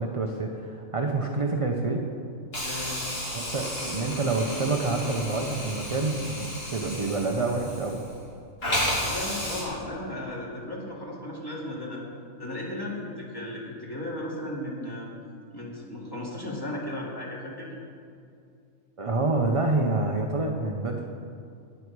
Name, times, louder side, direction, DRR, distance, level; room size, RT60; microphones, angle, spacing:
voice 1, 0.0-2.1 3.3-8.0 19.0-21.0, right 3 dB, 30° right, 2 dB, 0.6 m, -27 dB
Hiss, 2.5-8.3 8.6-9.6, left 1 dB, 45° left, 3.1 m, -33 dB
voice 2, 2.6-3.0 9.0-12.0 12.4-15.1 15.5-17.7, left 1 dB, 15° left, -5 dB, 2.4 m, -35 dB
19.5 x 6.8 x 4.7 m, 2.5 s
omnidirectional pair, 1.4 m